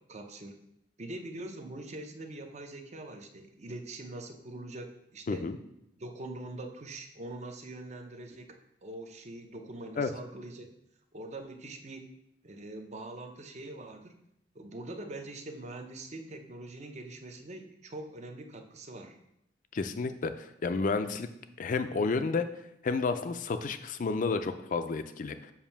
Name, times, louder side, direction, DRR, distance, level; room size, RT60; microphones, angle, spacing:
voice 1, 0.1-0.6 1.0-5.5 6.0-8.6 8.8-10.7 11.1-12.0 12.4-14.1 14.5-19.2, right 2 dB, 40° right, 5 dB, 0.6 m, -43 dB
voice 2, 19.7-21.3 21.6-22.4 22.8-25.5, left 4 dB, 45° left, 10 dB, 0.4 m, -31 dB
7.2 x 2.6 x 5.5 m, 0.79 s
head